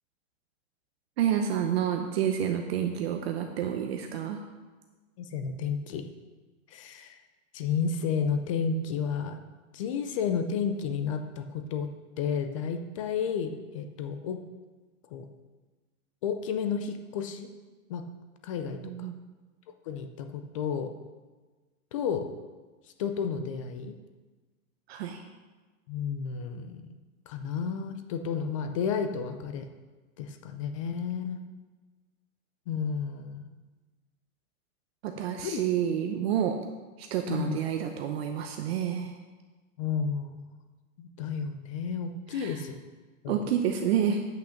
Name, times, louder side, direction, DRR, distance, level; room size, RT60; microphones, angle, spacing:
voice 1, 1.2-4.4 18.8-19.1 24.9-25.2 35.0-36.6 37.0-39.1 42.3-42.5 43.3-44.2, right 9 dB, 45° right, 4 dB, 0.8 m, -29 dB
voice 2, 5.2-6.1 6.7-7.2 7.5-9.4 9.7-11.9 12.2-14.4 15.1-15.3 16.2-17.5 17.9-18.0 18.4-19.1 19.9-20.9 21.9-22.3 23.0-23.9 25.9-26.9 27.3-29.7 30.2-31.4 32.7-33.4 35.4-35.6 37.2-37.6 39.8-40.5 41.0-42.8 43.2-43.4, left 6 dB, 25° left, 8 dB, 0.4 m, -32 dB
8.8 x 5.9 x 6.5 m, 1.3 s
supercardioid pair, 160°, 42 cm